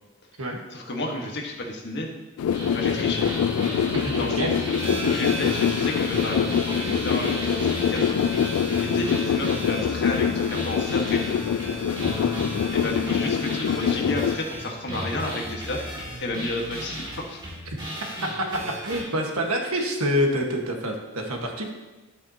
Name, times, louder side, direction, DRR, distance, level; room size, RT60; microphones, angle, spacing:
voice 1, 0.7-2.1 2.7-3.3 4.1-4.5 5.0-11.4 12.7-17.4 19.6-19.8, left 1 dB, 55° left, 0 dB, 1.5 m, -32 dB
sound 1, 2.4-14.4, left 8 dB, 80° left, 0.3 m, -25 dB
sound 2, 2.5-19.0, equal, 20° right, 2.6 m, -33 dB
voice 2, 3.9-4.5 18.8-21.7, equal, 85° right, 2 dB, 1.6 m, -26 dB
11.5 x 8.4 x 2.9 m, 1.1 s
head